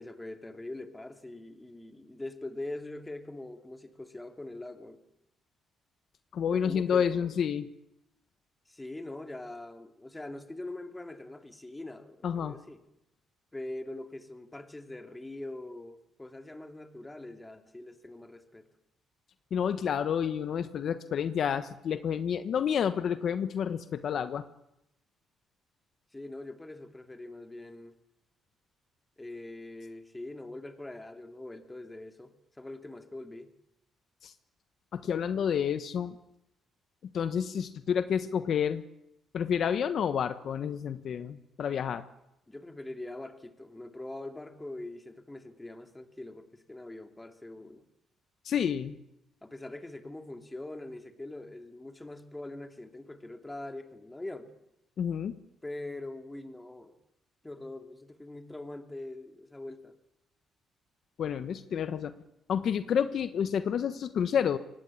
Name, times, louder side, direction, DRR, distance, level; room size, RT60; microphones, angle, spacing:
voice 1, 0.0-5.0 6.5-7.3 8.7-12.8 13.5-18.7 26.1-28.0 29.2-33.5 42.5-47.8 49.4-54.5 55.6-57.0 57.4-59.9, left 2 dB, 15° left, 5 dB, 2.8 m, -43 dB
voice 2, 6.3-7.6 12.2-12.6 19.5-24.4 34.2-34.3 34.9-36.1 37.1-38.8 39.3-42.0 48.4-49.0 55.0-55.3 61.2-62.1 62.5-64.6, left 8 dB, 60° left, 10 dB, 1.2 m, -29 dB
24.5 x 19.0 x 8.6 m, 0.83 s
cardioid pair, 90°, 0 cm